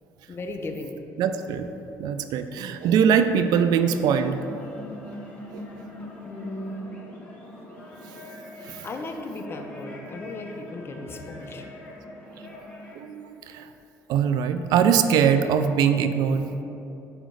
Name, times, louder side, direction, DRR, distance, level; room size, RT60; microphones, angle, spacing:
voice 1, 0.3-1.0 6.2-6.9 8.8-11.7, left 2 dB, 35° left, 4 dB, 0.7 m, -36 dB
voice 2, 1.2-1.7 2.0-4.4 5.5-5.7 8.7-8.9 13.0-13.7 14.1-16.5, right 7 dB, 75° right, 9 dB, 0.4 m, -22 dB
sound 1, 3.2-13.0, left 1 dB, 20° left, 1.6 m, -42 dB
7.9 x 3.1 x 6.3 m, 3.0 s
cardioid pair, 100°, 7 cm